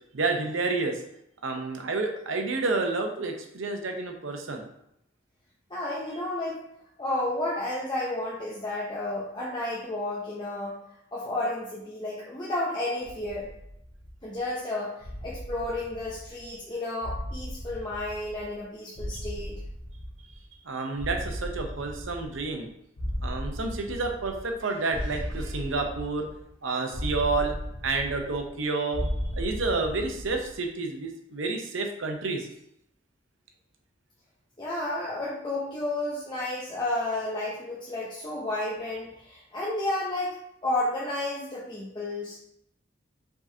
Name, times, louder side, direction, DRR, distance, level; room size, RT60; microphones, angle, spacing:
voice 1, 0.1-1.0 1.4-4.6 20.6-22.7 23.2-26.3 26.6-27.5 27.8-32.5, right 3 dB, 85° right, 3 dB, 0.8 m, -29 dB
voice 2, 5.7-6.6 7.0-10.8 11.1-13.5 14.2-14.9 15.2-19.6 34.6-40.3 40.6-42.4, left 1 dB, 25° left, -7 dB, 0.7 m, -31 dB
sound 1, 13.0-14.4 15.0-16.6 17.0-18.6 19.0-20.5 21.0-22.6 23.0-24.6 24.9-26.5 26.9-28.6 28.9-30.5, equal, 80° left, 1.1 m, -36 dB
4.9 x 3.7 x 2.7 m, 0.78 s
head